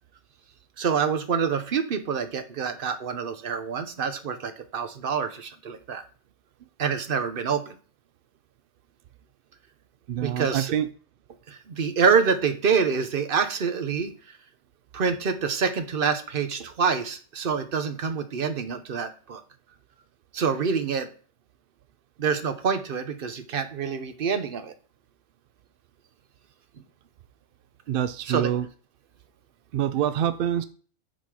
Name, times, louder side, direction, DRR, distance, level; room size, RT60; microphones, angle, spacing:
voice 1, 0.8-6.0 6.8-7.7 10.2-10.7 11.5-14.1 14.9-19.4 20.3-21.1 22.2-24.7 28.2-28.5, right 6 dB, 45° right, 9 dB, 0.9 m, -26 dB
voice 2, 10.1-10.9 27.9-28.7 29.7-30.6, right 10 dB, 70° right, 12 dB, 0.5 m, -26 dB
10.5 x 4.2 x 4.8 m, 0.42 s
omnidirectional pair, 1.5 m